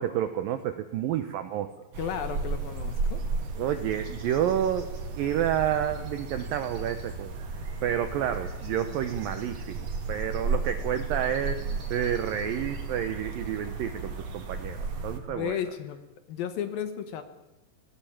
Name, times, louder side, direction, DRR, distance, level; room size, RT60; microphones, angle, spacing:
voice 1, 0.0-1.7 3.6-4.9 5.2-7.3 7.8-9.8 10.1-14.8 15.0-15.6, right 10 dB, 85° right, 9 dB, 2.0 m, -29 dB
sound 1, 1.9-15.2, right 4 dB, 45° right, 2.6 m, -34 dB
voice 2, 2.0-3.2 15.3-16.0 16.3-17.2, left 9 dB, 70° left, 9 dB, 2.3 m, -33 dB
19.5 x 18.0 x 8.7 m, 0.98 s
omnidirectional pair, 5.3 m